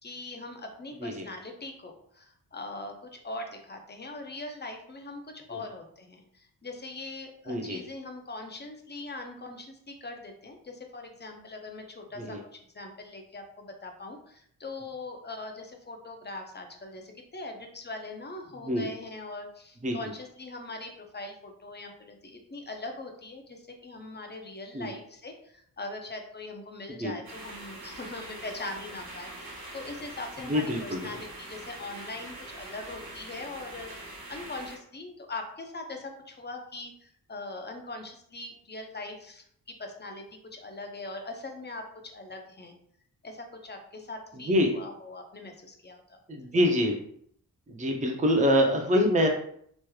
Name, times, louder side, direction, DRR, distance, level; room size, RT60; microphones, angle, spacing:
voice 1, 0.0-33.9 34.3-39.4 39.8-42.7 43.2-46.2, left 2 dB, 25° left, 3 dB, 0.6 m, -41 dB
voice 2, 7.5-7.8 12.2-12.4 18.7-18.9 19.8-20.0 24.7-24.9 27.0-27.1 30.5-31.0 44.5-44.7 46.3-47.0 47.7-49.3, equal, 20° right, 2 dB, 0.6 m, -25 dB
sound 1, 27.2-34.8, right 1 dB, 65° right, 1.2 m, -43 dB
3.1 x 3.1 x 2.3 m, 0.65 s
cardioid pair, 55°, 39 cm